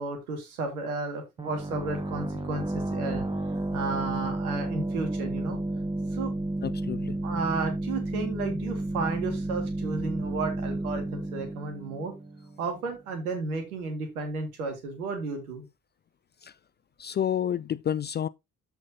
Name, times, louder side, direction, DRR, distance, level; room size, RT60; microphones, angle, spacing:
voice 1, 0.0-3.2 3.7-5.6 6.1-6.3 7.2-12.1 12.6-15.6, right 4 dB, 80° right, 1.9 m, -33 dB
sound 1, 1.4-12.9, right 1 dB, 10° right, 1.4 m, -32 dB
voice 2, 6.6-7.2 16.4-16.5 17.0-18.3, left 9 dB, 25° left, 0.3 m, -29 dB
13.0 x 4.5 x 2.7 m
figure-of-eight pair, 40°, 43 cm